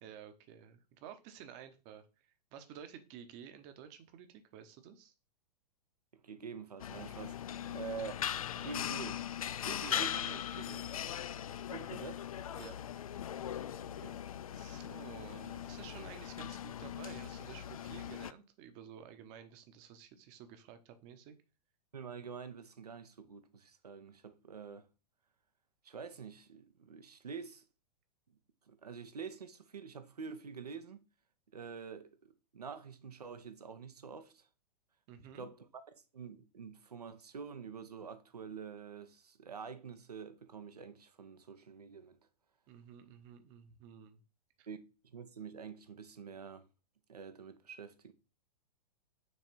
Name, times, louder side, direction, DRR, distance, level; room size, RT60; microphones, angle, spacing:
voice 1, 0.0-5.1 7.5-7.7 9.6-10.8 12.6-12.8 14.5-21.3 35.1-35.5 42.7-44.2 44.6-44.7, right 9 dB, 30° right, 1.0 m, -52 dB
voice 2, 6.2-7.4 7.7-8.1 8.5-9.2 9.9-10.1 11.7-12.2 13.9-14.2 21.9-24.9 25.8-27.6 28.7-31.0 31.5-34.5 35.3-42.2 44.7-44.8 45.0-46.7 47.1-48.1, right 6 dB, 70° right, 0.9 m, -47 dB
sound 1, 6.8-18.3, left 10 dB, 60° left, 0.4 m, -40 dB
6.4 x 3.4 x 4.5 m
figure-of-eight pair, 105°, 21 cm